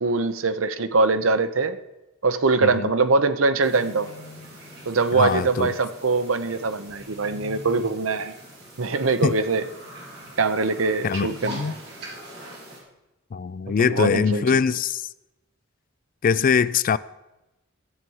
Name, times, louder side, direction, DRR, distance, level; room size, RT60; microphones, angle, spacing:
voice 1, 0.0-1.8 2.2-4.1 4.9-8.3 8.8-9.6 10.4-11.7 13.8-14.6, right 3 dB, 80° right, 0.8 m, -23 dB
sound 1, 3.6-12.8, right 1 dB, 55° right, 3.7 m, -42 dB
voice 2, 5.1-5.7 9.2-9.3 11.0-11.8 13.3-15.0 16.2-17.0, left 6 dB, 45° left, 0.3 m, -22 dB
13.5 x 7.8 x 5.5 m
head